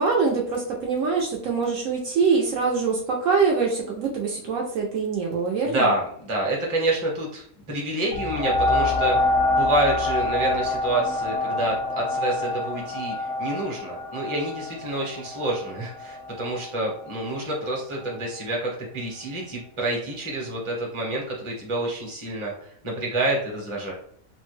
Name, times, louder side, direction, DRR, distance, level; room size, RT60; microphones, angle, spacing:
voice 1, 0.0-5.9, right 5 dB, 70° right, 0 dB, 0.9 m, -24 dB
voice 2, 5.7-9.3 9.6-23.9, right 1 dB, 25° right, -2 dB, 0.8 m, -28 dB
sound 1, 8.1-17.4 18.0-18.1, left 2 dB, 85° left, 1.2 m, -26 dB
3.2 x 2.1 x 3.1 m, 0.62 s
omnidirectional pair, 1.5 m